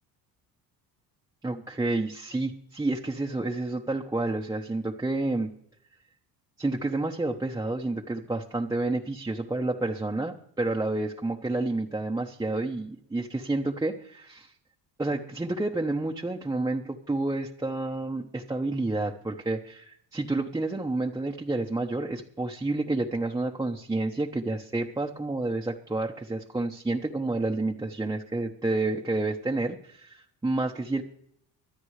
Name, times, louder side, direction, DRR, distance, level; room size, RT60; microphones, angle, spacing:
voice 1, 1.4-5.5 6.6-14.5 15.0-31.0, right 2 dB, 10° right, 0 dB, 1.0 m, -29 dB
25.0 x 9.0 x 3.3 m, 0.70 s
cardioid pair, 105°, 36 cm